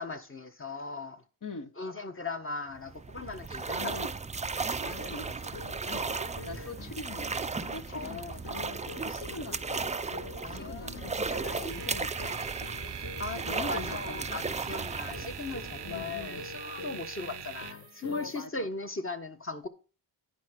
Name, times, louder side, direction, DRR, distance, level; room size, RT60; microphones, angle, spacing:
voice 1, 0.0-1.2 1.8-3.9 6.5-6.7 7.9-9.0 10.4-11.4 12.8-19.7, left 3 dB, 30° left, 1.3 m, -39 dB
voice 2, 1.4-1.7 3.7-4.2 4.8-5.5 5.8-7.3 7.7-9.6 10.5-12.6 13.3-14.4 15.8-16.4 18.1-18.6, left 3 dB, 45° left, 1.1 m, -43 dB
sound 1, 2.8-16.5, right 4 dB, 15° right, 0.4 m, -36 dB
sound 2, 5.1-18.4, left 5 dB, 90° left, 0.9 m, -47 dB
sound 3, 11.7-18.5, right 9 dB, 70° right, 0.6 m, -43 dB
10.5 x 4.8 x 6.0 m
cardioid pair, 65°, 43 cm